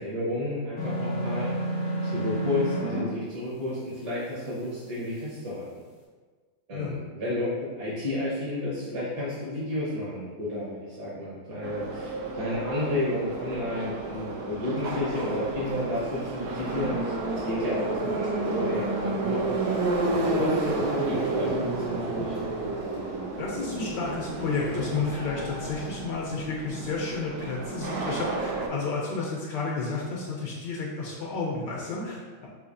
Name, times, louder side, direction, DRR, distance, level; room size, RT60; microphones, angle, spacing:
voice 1, 0.0-1.5 2.1-5.7 6.7-17.1 17.5-19.5 20.0-22.3, left 1 dB, 50° right, -8 dB, 1.6 m, -31 dB
sound 1, 0.8-3.0, right 1 dB, 50° left, 0.8 m, -29 dB
voice 2, 6.7-7.0 23.4-32.5, left 4 dB, 70° left, -3 dB, 1.2 m, -31 dB
Subway metro underground, 11.6-28.7, right 2 dB, 70° right, 1.0 m, -31 dB
6.3 x 2.8 x 2.7 m, 1.5 s
omnidirectional pair, 2.3 m